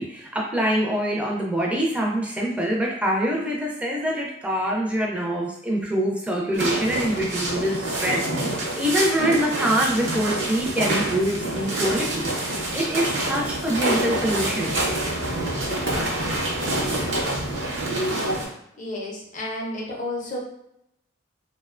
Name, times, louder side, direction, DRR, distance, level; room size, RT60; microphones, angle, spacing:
voice 1, 0.0-8.2 8.8-14.8, right 1 dB, 5° right, -2 dB, 0.4 m, -25 dB
sound 1, 6.5-18.4, right 1 dB, 75° right, 0.7 m, -26 dB
voice 2, 18.8-20.4, left 1 dB, 40° left, -2 dB, 0.6 m, -31 dB
2.7 x 2.1 x 2.4 m, 0.80 s
head